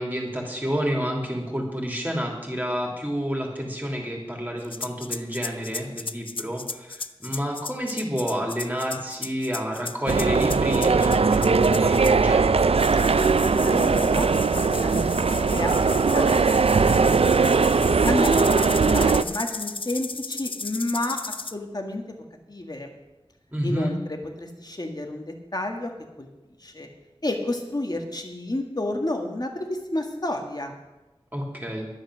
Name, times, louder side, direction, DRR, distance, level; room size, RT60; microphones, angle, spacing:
voice 1, 0.0-12.8 23.5-23.9 31.3-31.9, equal, 15° right, -1 dB, 2.9 m, -29 dB
sound 1, 4.6-12.3 12.7-21.5, left 4 dB, 60° left, 0.5 m, -35 dB
sound 2, 10.1-19.2, right 4 dB, 75° right, 0.4 m, -20 dB
voice 2, 13.6-17.7 18.0-22.2 22.5-22.9 23.6-25.9 26.2-26.3 26.6-26.9 27.2-30.8, left 1 dB, 40° left, 3 dB, 1.8 m, -31 dB
10.5 x 10.0 x 6.3 m, 1.1 s
wide cardioid pair, 50°, 10 cm